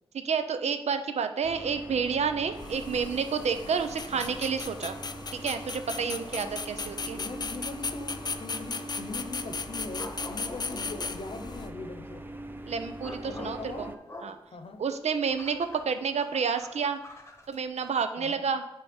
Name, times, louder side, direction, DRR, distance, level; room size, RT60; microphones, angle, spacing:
voice 1, 0.1-5.0 5.3-7.2 12.7-13.9 14.2-14.4 14.8-17.0 17.5-18.6, right 6 dB, 85° right, 9 dB, 0.5 m, -30 dB
sound 1, 1.4-14.0, right 1 dB, 20° right, 0.5 m, -42 dB
sound 2, 2.5-11.7, left 4 dB, 40° left, 0.4 m, -37 dB
voice 2, 7.0-12.2 13.2-13.8 14.5-14.8 18.2-18.4, left 3 dB, 60° left, 7 dB, 0.8 m, -41 dB
sound 3, 10.0-11.5 12.2-18.0, left 1 dB, 25° left, 1.0 m, -46 dB
8.9 x 3.4 x 4.3 m, 0.93 s
wide cardioid pair, 80°, 11 cm